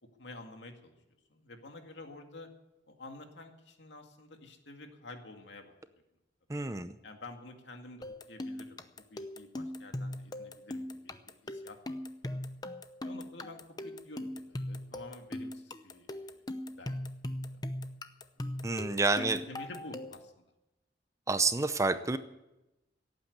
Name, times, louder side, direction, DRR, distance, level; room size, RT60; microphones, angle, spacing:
voice 1, 0.2-0.9 1.3-2.5 2.9-5.7 7.0-11.2 11.4-11.8 12.3-12.4 13.0-16.4 16.8-16.9 17.5-17.6 18.4-20.3, left 2 dB, 80° left, 4 dB, 2.1 m, -49 dB
voice 2, 6.5-6.9 18.6-19.4 21.3-22.2, right 3 dB, 15° right, 11 dB, 0.6 m, -29 dB
sound 1, 8.0-20.3, left 1 dB, 20° left, 0.7 m, -40 dB
17.0 x 9.0 x 8.1 m, 0.96 s
head